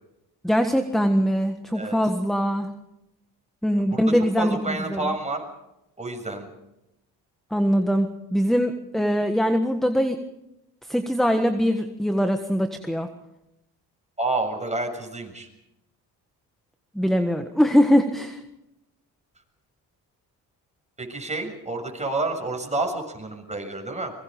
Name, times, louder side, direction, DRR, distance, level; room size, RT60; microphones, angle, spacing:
voice 1, 0.4-2.7 3.6-4.6 4.9-5.1 7.5-10.2 10.9-13.1 16.9-18.4, equal, ahead, 7 dB, 1.5 m, -22 dB
voice 2, 3.9-5.4 6.0-6.5 14.2-15.5 21.0-24.1, right 2 dB, 15° right, 3 dB, 7.0 m, -29 dB
25.0 x 22.5 x 5.3 m, 0.89 s
supercardioid pair, 70°, 39 cm